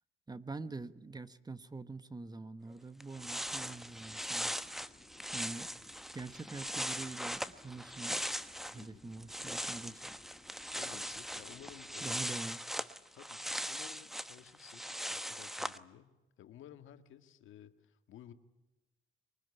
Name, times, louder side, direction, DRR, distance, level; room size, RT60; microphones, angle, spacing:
voice 1, 0.3-4.6 5.3-5.7 6.1-8.3 8.7-10.0 12.0-12.6, right 3 dB, 20° right, 14 dB, 1.2 m, -45 dB
sound 1, 2.7-2.8 3.0-8.8 9.1-15.8, equal, ahead, 1.1 m, -40 dB
sound 2, 3.1-12.3, left 3 dB, 20° left, 2.0 m, -62 dB
voice 2, 10.7-12.2 13.1-18.3, left 11 dB, 80° left, 10 dB, 1.7 m, -55 dB
23.5 x 20.0 x 9.7 m, 1.0 s
cardioid pair, 90°, 20 cm